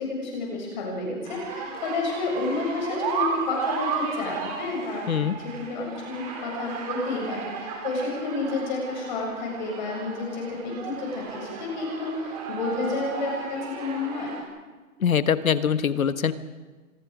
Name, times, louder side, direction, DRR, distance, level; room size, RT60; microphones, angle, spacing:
voice 1, 0.0-5.1 5.3-14.3, left 3 dB, 30° left, -1 dB, 7.2 m, -30 dB
sound 1, 1.3-14.4, right 5 dB, 25° right, 3.9 m, -34 dB
voice 2, 15.0-16.3, left 7 dB, 70° left, 13 dB, 1.4 m, -23 dB
25.5 x 21.5 x 5.1 m, 1.3 s
hypercardioid pair, 165°, 42 cm